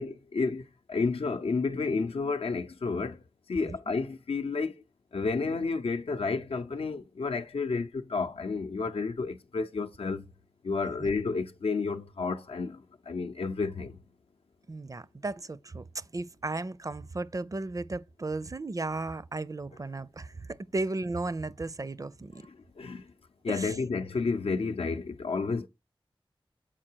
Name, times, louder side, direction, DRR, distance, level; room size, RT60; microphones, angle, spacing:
voice 1, 0.0-3.2 3.5-4.7 5.1-10.3 10.6-14.0 22.4-23.1 23.4-25.7, left 4 dB, 85° left, 0.6 m, -31 dB
voice 2, 14.7-22.4 23.5-23.8, right 2 dB, 35° right, 0.4 m, -35 dB
7.4 x 4.7 x 4.5 m
wide cardioid pair, 80°, 10 cm